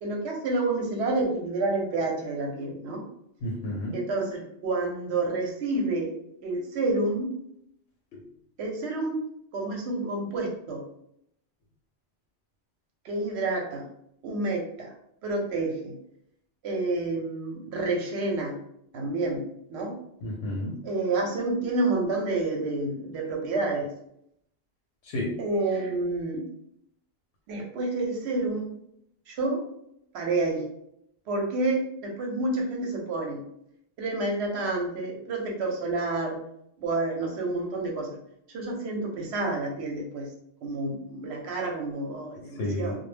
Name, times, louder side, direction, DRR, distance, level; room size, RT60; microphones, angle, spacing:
voice 1, 0.0-3.0 3.9-6.1 6.4-7.3 8.6-9.2 9.5-10.8 13.0-13.8 14.2-14.9 15.2-15.9 16.6-18.6 18.9-19.4 19.7-19.9 20.8-23.9 25.4-26.4 27.5-28.8 29.3-29.6 30.1-30.6 31.3-33.4 34.0-36.4 36.8-38.2 38.5-40.3 40.6-43.0, right 2 dB, 80° right, 0 dB, 0.9 m, -29 dB
voice 2, 3.4-3.9 8.1-8.2 20.2-20.8 25.0-25.4 42.6-43.0, left 1 dB, 90° left, -3 dB, 0.9 m, -31 dB
2.1 x 2.1 x 3.2 m, 0.73 s
omnidirectional pair, 1.1 m